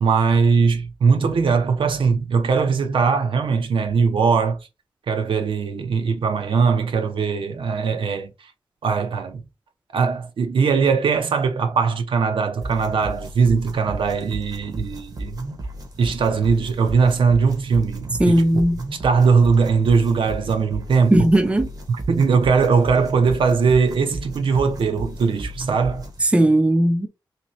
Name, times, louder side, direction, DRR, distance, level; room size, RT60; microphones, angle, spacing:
voice 1, 0.0-4.6 5.1-8.3 8.8-9.4 9.9-15.4 16.0-18.6 18.9-21.3 21.9-26.1, right 5 dB, 80° right, 0.6 m, -20 dB
sound 1, 12.6-26.2, right 1 dB, 50° right, 0.8 m, -34 dB
voice 2, 18.2-18.8 21.1-21.7 26.2-27.1, right 1 dB, 15° right, 0.4 m, -17 dB
3.2 x 2.9 x 3.0 m
wide cardioid pair, 135°, 9 cm